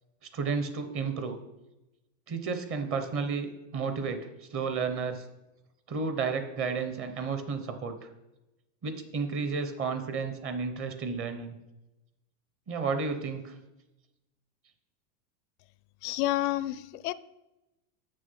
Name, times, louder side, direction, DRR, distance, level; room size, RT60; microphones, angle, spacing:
voice 1, 0.3-1.4 2.3-5.2 5.9-7.9 8.8-11.5 12.7-13.5, right 5 dB, 25° right, 7 dB, 0.9 m, -32 dB
voice 2, 16.0-17.1, left 15 dB, 70° left, 17 dB, 0.5 m, -29 dB
6.7 x 6.3 x 5.5 m, 0.95 s
supercardioid pair, 145°, 48 cm